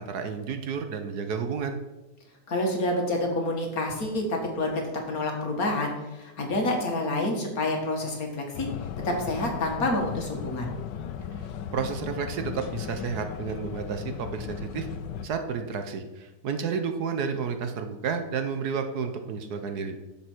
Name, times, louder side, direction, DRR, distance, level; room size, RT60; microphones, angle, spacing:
voice 1, 0.0-1.8 11.7-14.9 15.2-20.0, right 6 dB, 65° right, 7 dB, 1.4 m, -31 dB
voice 2, 2.5-8.7 9.0-10.7, left 1 dB, 55° left, 1 dB, 2.1 m, -28 dB
sound 1, 8.5-15.3, left 8 dB, 85° left, 1.3 m, -36 dB
10.5 x 7.5 x 4.5 m, 1.1 s
omnidirectional pair, 1.9 m